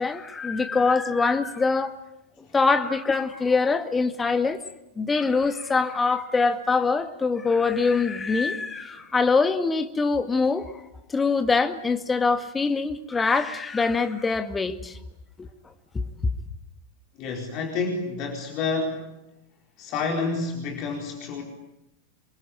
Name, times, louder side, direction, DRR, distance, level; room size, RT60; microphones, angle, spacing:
voice 1, 0.0-1.9 2.5-4.6 5.0-10.7 11.1-15.0 15.4-15.5 15.9-16.0, left 4 dB, 15° left, 2.0 m, -23 dB
voice 2, 17.2-19.0 19.8-21.4, left 4 dB, 40° left, 4.6 m, -29 dB
28.5 x 22.0 x 9.3 m
figure-of-eight pair, 90°, 0 cm